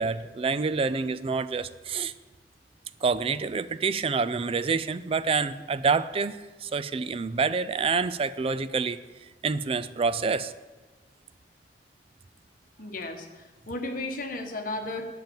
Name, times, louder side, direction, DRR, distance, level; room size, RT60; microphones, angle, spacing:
voice 1, 0.0-2.1 3.0-9.0 9.4-10.5, right 4 dB, 35° right, 15 dB, 0.4 m, -27 dB
voice 2, 12.8-15.1, left 2 dB, 50° left, 4 dB, 1.2 m, -34 dB
9.0 x 7.9 x 7.1 m, 1.3 s
head